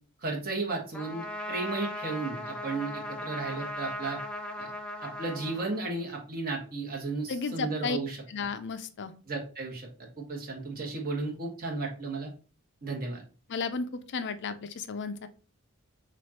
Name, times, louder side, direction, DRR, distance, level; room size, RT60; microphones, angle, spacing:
voice 1, 0.2-4.2 4.6-4.7 5.0-8.2 9.3-9.9 10.2-12.3 12.8-13.2, right 3 dB, 45° right, 0 dB, 1.4 m, -34 dB
Trumpet, 0.9-6.2, left 1 dB, 5° left, 0.6 m, -38 dB
voice 2, 7.3-8.0 8.3-9.1 13.5-15.3, left 4 dB, 55° left, 11 dB, 0.5 m, -33 dB
6.4 x 2.5 x 2.9 m, 0.36 s
head